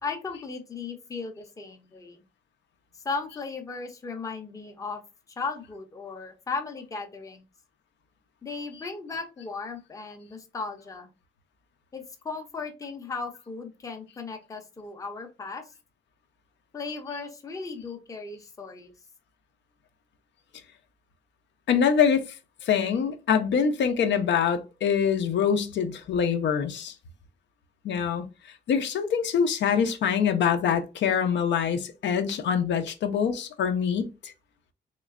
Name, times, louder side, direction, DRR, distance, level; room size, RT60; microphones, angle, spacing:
voice 1, 0.0-2.2 3.0-5.0 5.4-7.4 8.4-11.1 11.9-15.7 16.7-18.9, left 4 dB, 20° left, 0.5 m, -36 dB
voice 2, 21.7-22.4 22.6-26.9 27.8-28.3 28.7-34.3, left 7 dB, 85° left, 0.6 m, -24 dB
3.7 x 3.1 x 2.4 m
wide cardioid pair, 180°, 18 cm